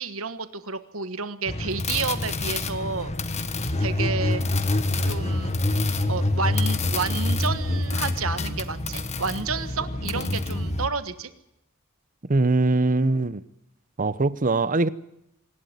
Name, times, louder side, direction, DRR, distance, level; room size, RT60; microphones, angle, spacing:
voice 1, 0.0-3.1 3.8-4.4 5.0-5.5 6.1-11.3, right 4 dB, 70° right, 1.4 m, -30 dB
sound 1, 1.5-10.9, left 2 dB, 30° left, 1.4 m, -26 dB
voice 2, 12.3-13.4 14.0-14.9, right 2 dB, 40° right, 0.8 m, -22 dB
25.5 x 12.0 x 9.6 m
head